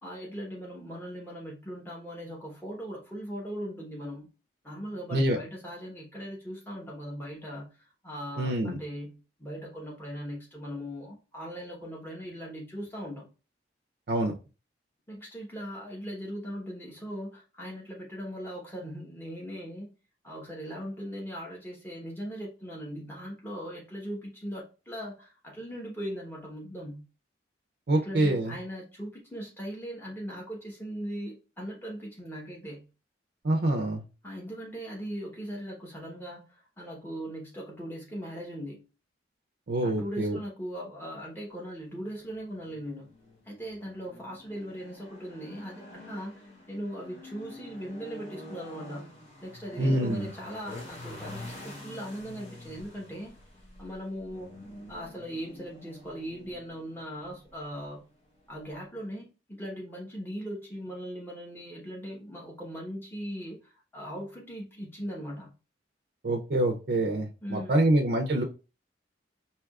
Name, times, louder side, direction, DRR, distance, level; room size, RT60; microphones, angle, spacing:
voice 1, 0.0-4.3 4.6-13.3 15.1-19.9 20.2-27.1 28.0-32.9 34.2-38.8 39.8-43.1 43.4-46.4 46.7-49.1 49.4-53.4 53.8-54.5 54.9-58.1 58.5-59.3 59.6-65.5 67.4-67.9, equal, 10° left, 1.0 m, -39 dB
voice 2, 8.4-8.8 14.1-14.3 27.9-28.5 33.4-34.0 39.7-40.4 49.8-50.3 66.2-68.4, right 1 dB, 55° right, 0.5 m, -26 dB
sound 1, 42.2-58.9, left 1 dB, 35° left, 0.9 m, -47 dB
4.6 x 2.8 x 2.3 m
head